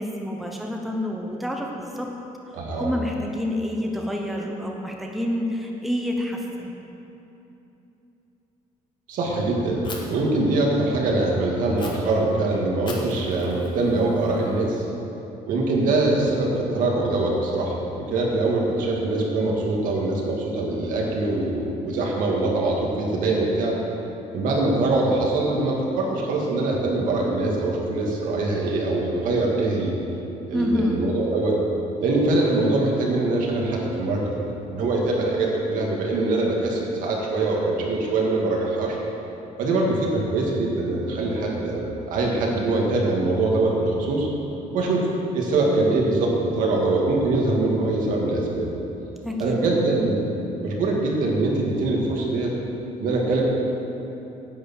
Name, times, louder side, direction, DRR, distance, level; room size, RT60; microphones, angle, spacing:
voice 1, 0.0-2.1 2.8-6.7 30.5-31.0 49.2-49.6, left 1 dB, ahead, 0 dB, 0.8 m, -28 dB
voice 2, 2.5-2.9 9.1-14.9 15.5-23.8 24.3-29.9 30.5-31.6 32.0-39.0 39.6-41.8 42.1-44.3 44.7-48.7 49.4-50.3 50.6-52.5 53.0-53.4, right 2 dB, 80° right, -2 dB, 2.2 m, -23 dB
Fire, 9.8-10.0 11.8-11.9 12.9-14.8, left 4 dB, 35° left, 1.4 m, -41 dB
10.0 x 6.7 x 7.5 m, 3.0 s
cardioid pair, 170°, 14 cm